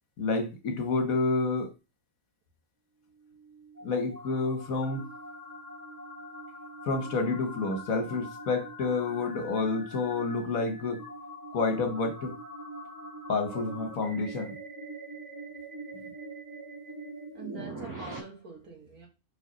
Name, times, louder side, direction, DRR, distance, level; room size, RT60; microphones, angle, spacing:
voice 1, 0.2-1.7 3.8-5.1 6.8-11.0 11.5-12.4 13.3-14.6, left 3 dB, 70° left, 1.5 m, -29 dB
sound 1, 3.1-18.2, right 1 dB, 15° right, 2.0 m, -43 dB
voice 2, 17.3-19.1, right 4 dB, 80° right, 2.9 m, -45 dB
5.7 x 5.1 x 4.0 m
omnidirectional pair, 1.5 m